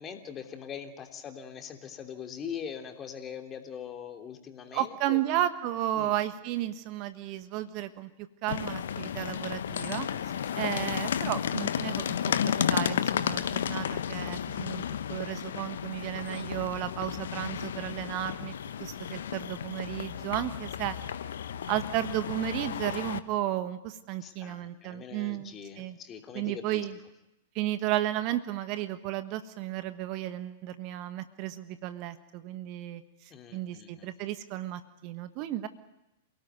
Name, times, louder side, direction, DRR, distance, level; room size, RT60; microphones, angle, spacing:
voice 1, 0.0-5.2 6.0-6.1 10.5-10.8 24.2-26.8 33.3-34.1, left 7 dB, 25° left, 4 dB, 3.1 m, -42 dB
voice 2, 4.7-8.1 8.4-12.1 12.4-21.0 21.7-26.0 26.3-27.0 27.5-33.0 33.5-35.7, right 13 dB, 40° right, 11 dB, 1.3 m, -33 dB
sound 1, 8.5-23.2, left 9 dB, 65° left, 1.1 m, -33 dB
28.5 x 18.0 x 9.4 m, 0.91 s
figure-of-eight pair, 100°, 0 cm